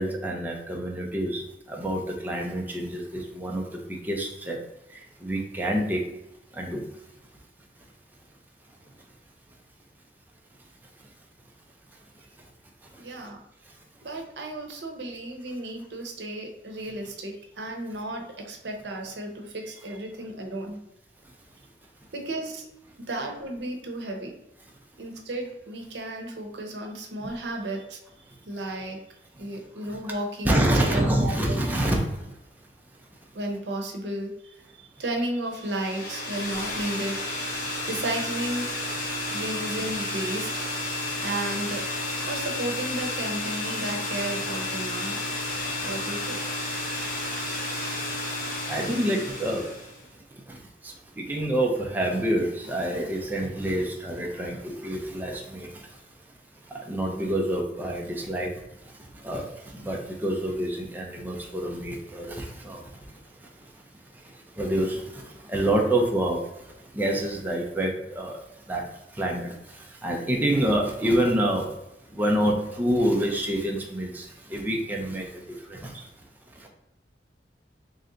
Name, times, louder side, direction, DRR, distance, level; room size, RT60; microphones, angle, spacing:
voice 1, 0.0-4.6 4.9-6.1 6.5-6.9 12.4-12.5 12.9-13.0 13.6-13.7 28.3-28.4 29.3-29.5 29.9-30.1 30.4-32.4 33.0-33.1 37.6-37.7 39.3-39.4 45.8-46.0 47.3-47.5 48.7-49.8 50.1-56.0 56.5-63.8 64.1-71.8 72.1-76.1 76.5-76.7, right 1 dB, 10° right, 0 dB, 0.4 m, -28 dB
voice 2, 13.0-13.4 14.0-20.8 22.1-22.7 23.1-24.3 25.0-28.0 28.5-29.0 29.4-31.6 33.3-37.6 37.9-38.7 39.3-40.5 41.2-41.8 42.2-45.2 45.8-47.2, right 1 dB, 80° right, 2 dB, 0.7 m, -33 dB
sound 1, 35.6-50.0, left 2 dB, 50° left, 0.9 m, -32 dB
3.2 x 2.6 x 3.8 m, 0.90 s
head